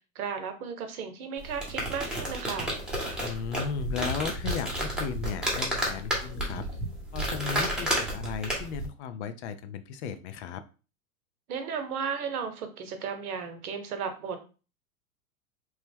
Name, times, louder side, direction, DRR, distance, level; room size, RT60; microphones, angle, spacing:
voice 1, 0.1-2.7 11.5-14.4, right 6 dB, 75° right, 7 dB, 0.9 m, -34 dB
sound 1, 1.4-8.9, right 1 dB, ahead, 0.9 m, -31 dB
voice 2, 3.2-6.7 7.1-10.6, left 6 dB, 50° left, 10 dB, 0.5 m, -35 dB
3.0 x 2.1 x 3.4 m, 0.34 s
hypercardioid pair, 115°, 44 cm